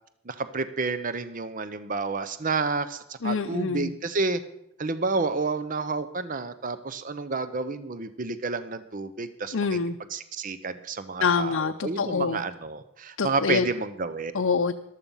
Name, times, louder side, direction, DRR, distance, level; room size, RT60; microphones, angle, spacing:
voice 1, 0.3-4.4 4.8-9.5 10.1-14.3, right 4 dB, 40° right, 12 dB, 0.6 m, -30 dB
voice 2, 3.2-3.9 9.5-10.0 11.2-12.4 13.2-13.7 14.3-14.7, left 5 dB, 65° left, 6 dB, 0.6 m, -25 dB
14.5 x 12.0 x 5.5 m, 0.78 s
head